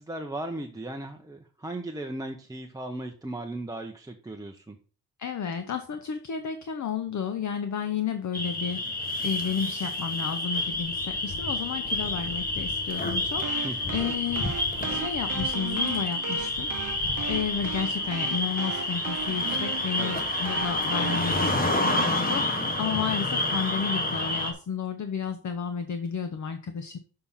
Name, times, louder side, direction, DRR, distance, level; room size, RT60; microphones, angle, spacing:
voice 1, 0.0-4.8 13.6-14.0 20.0-20.2, right 1 dB, 10° right, 2 dB, 0.6 m, -37 dB
voice 2, 5.2-14.5 14.9-27.0, left 7 dB, 45° left, 8 dB, 0.7 m, -32 dB
sound 1, 8.3-24.5, left 2 dB, 20° left, 1.5 m, -29 dB
sound 2, 13.3-21.5, right 7 dB, 50° right, 0.8 m, -37 dB
6.8 x 5.6 x 5.5 m, 0.40 s
wide cardioid pair, 165°, 39 cm